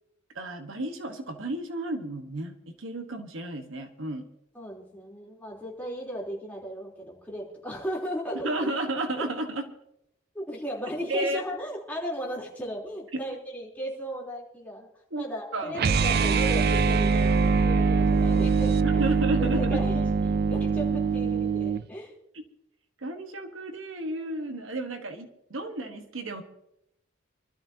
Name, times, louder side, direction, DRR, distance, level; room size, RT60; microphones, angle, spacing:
voice 1, 0.3-4.3 8.4-9.7 11.1-11.4 13.1-13.2 15.1-15.3 15.5-15.8 18.8-19.8 22.3-22.4 23.0-26.4, right 1 dB, 75° right, 6 dB, 1.4 m, -32 dB
voice 2, 4.5-8.7 10.3-14.9 15.2-19.1 19.4-22.1, equal, 10° left, -3 dB, 3.5 m, -36 dB
sound 1, 15.7-21.8, right 4 dB, 50° right, 0.5 m, -23 dB
25.0 x 13.0 x 2.8 m, 0.79 s
head